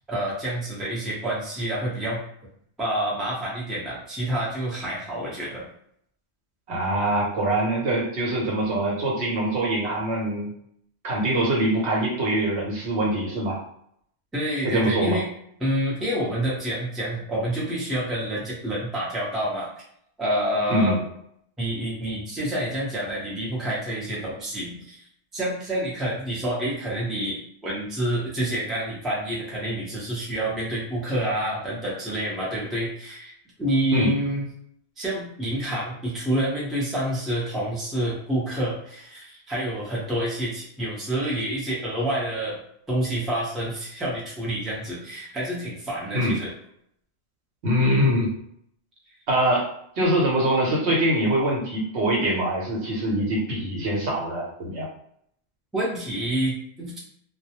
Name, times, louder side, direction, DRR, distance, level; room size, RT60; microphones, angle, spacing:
voice 1, 0.1-2.2 2.8-5.7 14.3-15.3 15.6-19.7 20.2-21.0 21.6-25.0 25.3-33.3 33.6-34.4 35.0-42.6 42.9-46.5 55.7-57.0, right 1 dB, ahead, -6 dB, 0.5 m, -28 dB
voice 2, 6.7-10.5 11.0-13.6 14.6-15.2 20.7-21.0 33.9-34.1 46.1-46.3 47.6-48.3 49.3-54.9, right 1 dB, 80° right, -3 dB, 1.0 m, -23 dB
2.2 x 2.1 x 2.8 m, 0.70 s
omnidirectional pair, 1.1 m